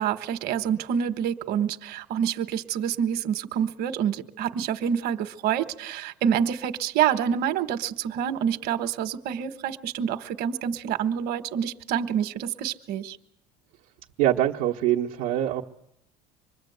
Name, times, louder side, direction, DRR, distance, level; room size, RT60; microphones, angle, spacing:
voice 1, 0.0-13.2, right 8 dB, 65° right, 9 dB, 1.3 m, -27 dB
voice 2, 14.2-15.6, right 13 dB, 90° right, -3 dB, 1.2 m, -24 dB
25.5 x 21.5 x 8.0 m, 0.85 s
cardioid pair, 115°, 17 cm